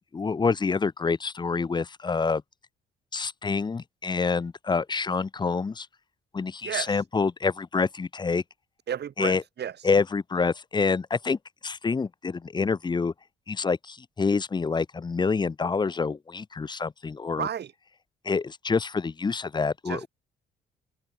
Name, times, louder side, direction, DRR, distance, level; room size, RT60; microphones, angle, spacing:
voice 1, 0.1-2.4 3.1-5.9 6.3-8.4 9.2-9.4 9.8-13.1 13.5-17.5 18.2-20.1, left 4 dB, 20° left, 0.6 m, -27 dB
voice 2, 6.6-7.0 8.9-9.9 17.4-17.7 19.8-20.1, right 9 dB, 55° right, 2.6 m, -33 dB
open air
cardioid pair, 90°, 20 cm